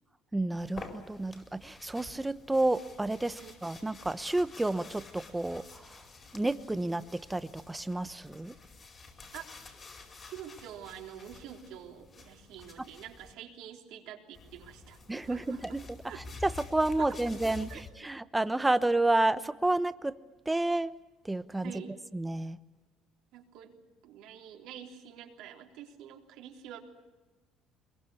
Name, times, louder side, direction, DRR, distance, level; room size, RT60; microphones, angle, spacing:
voice 1, 0.3-6.1 6.3-8.5 12.8-12.9 15.1-15.8 16.1-20.2 20.5-20.9 21.2-21.8 22.1-22.6, right 2 dB, 10° right, 13 dB, 1.0 m, -30 dB
sound 1, 0.6-13.3 14.3-17.9, left 3 dB, 30° left, 4.8 m, -49 dB
voice 2, 10.2-15.8 16.0-16.2 17.0-17.4 17.7-17.8 21.6-22.0 23.3-23.8 24.0-26.8, right 10 dB, 75° right, 2 dB, 3.4 m, -47 dB
23.0 x 22.0 x 8.4 m, 1.2 s
cardioid pair, 105°, 0 cm